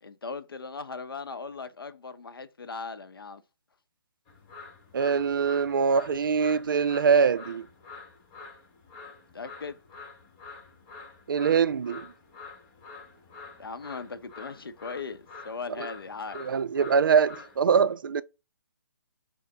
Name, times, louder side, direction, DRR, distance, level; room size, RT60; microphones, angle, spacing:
voice 1, 0.0-3.4 9.3-9.8 13.6-16.4, left 4 dB, 85° left, 0.6 m, -38 dB
sound 1, 4.3-17.6, left 4 dB, 25° left, 1.0 m, -47 dB
voice 2, 4.9-7.6 11.3-12.1 15.8-15.9 16.3-18.2, right 6 dB, 65° right, 0.4 m, -23 dB
5.7 x 2.0 x 3.3 m
hypercardioid pair, 150°, 12 cm